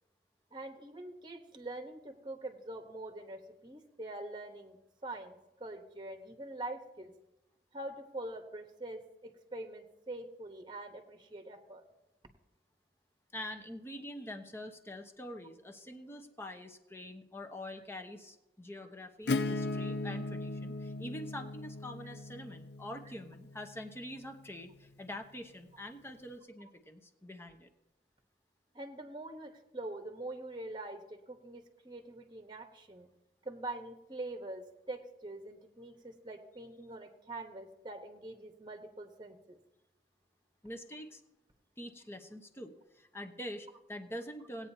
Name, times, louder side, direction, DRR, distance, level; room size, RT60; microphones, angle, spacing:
voice 1, 0.5-4.8 5.0-7.1 7.7-11.8 28.7-33.1 33.4-39.6, right 2 dB, 25° right, 5 dB, 1.1 m, -44 dB
voice 2, 13.3-27.7 40.6-41.2 41.8-44.7, left 1 dB, 15° left, 4 dB, 1.0 m, -45 dB
Acoustic guitar / Strum, 19.3-24.8, left 2 dB, 70° left, 0.6 m, -38 dB
19.0 x 8.9 x 2.8 m, 0.97 s
head